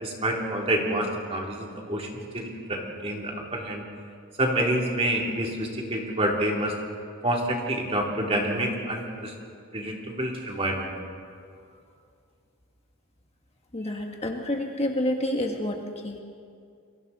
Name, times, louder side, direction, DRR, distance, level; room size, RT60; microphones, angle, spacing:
voice 1, 0.0-3.8 4.4-6.7 7.2-9.3 9.7-10.9, right 1 dB, 25° right, -1 dB, 3.0 m, -28 dB
voice 2, 13.7-16.2, left 1 dB, 30° left, 2 dB, 1.5 m, -29 dB
30.0 x 23.0 x 4.2 m, 2.3 s
head